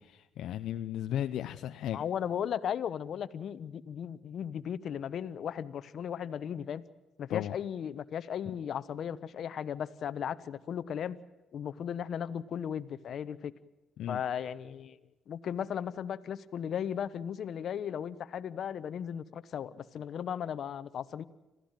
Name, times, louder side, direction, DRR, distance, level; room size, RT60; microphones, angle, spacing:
voice 1, 0.0-2.0 7.3-7.5 14.0-14.2, left 11 dB, 80° left, 7 dB, 0.7 m, -35 dB
voice 2, 1.9-6.8 7.2-11.2 11.5-13.5 14.1-15.0 15.3-21.2, left 8 dB, 65° left, 14 dB, 1.1 m, -36 dB
26.5 x 15.5 x 9.1 m, 1.0 s
cardioid pair, 90°, 0 cm